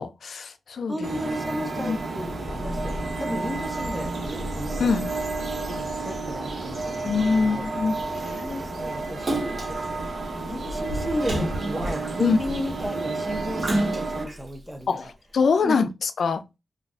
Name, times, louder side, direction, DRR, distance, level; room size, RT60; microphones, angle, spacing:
voice 1, 0.0-1.0 1.8-2.0 4.8-5.1 7.0-8.4 12.2-12.4 14.9-15.1 15.3-16.4, left 5 dB, 60° left, 0.4 m, -24 dB
voice 2, 0.9-2.3 2.6-4.9 5.7-7.6 8.3-15.1 15.6-15.9, equal, 5° right, 0.7 m, -34 dB
sound 1, 1.0-14.3, right 3 dB, 60° right, 1.1 m, -31 dB
sound 2, 1.9-11.7, left 1 dB, 25° left, 0.9 m, -40 dB
Splash splatter, 9.3-9.9 11.2-12.4 13.6-14.4 15.0-15.1, right 1 dB, 30° right, 1.4 m, -29 dB
4.4 x 2.3 x 2.5 m
wide cardioid pair, 165°, 0 cm